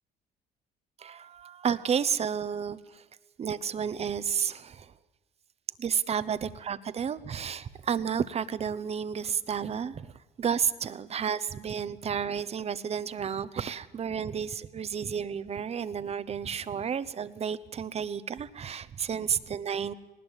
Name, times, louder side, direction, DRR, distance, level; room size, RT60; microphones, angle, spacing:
voice 1, 1.0-3.0 3.4-4.9 5.8-10.1 10.4-19.9, right 7 dB, 40° right, 15 dB, 0.9 m, -31 dB
19.0 x 19.0 x 8.2 m, 1.2 s
cardioid pair, 110°, 17 cm